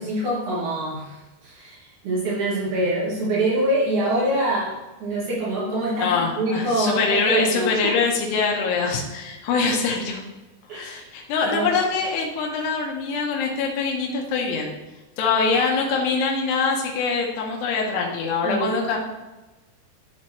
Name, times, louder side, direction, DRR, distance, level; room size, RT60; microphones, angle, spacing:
voice 1, 0.0-7.9 10.7-11.1 11.4-11.8 18.4-18.7, right 1 dB, 50° right, -7 dB, 3.4 m, -25 dB
voice 2, 6.0-10.2 10.7-14.7 15.2-19.0, left 4 dB, 85° left, 0 dB, 3.1 m, -24 dB
12.0 x 4.3 x 3.1 m, 1.1 s
omnidirectional pair, 4.7 m